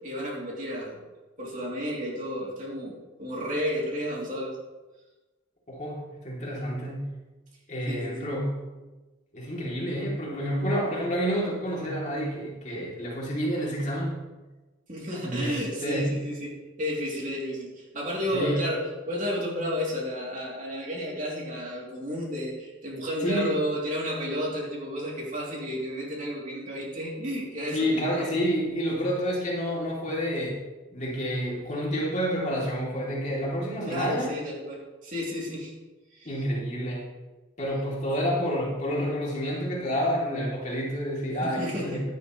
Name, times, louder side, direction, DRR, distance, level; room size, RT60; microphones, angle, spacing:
voice 1, 0.0-1.0 1.4-4.6 7.9-8.3 14.9-16.4 16.8-28.3 33.9-35.7 36.1-36.3 41.4-42.1, equal, 40° right, -4 dB, 3.2 m, -32 dB
voice 2, 5.7-7.1 7.7-8.6 9.3-14.2 15.2-16.3 18.3-18.7 23.2-23.5 27.7-30.6 30.9-34.4 36.2-37.1 37.6-42.1, equal, 35° left, -4 dB, 3.2 m, -29 dB
15.5 x 10.5 x 3.3 m, 1.2 s
head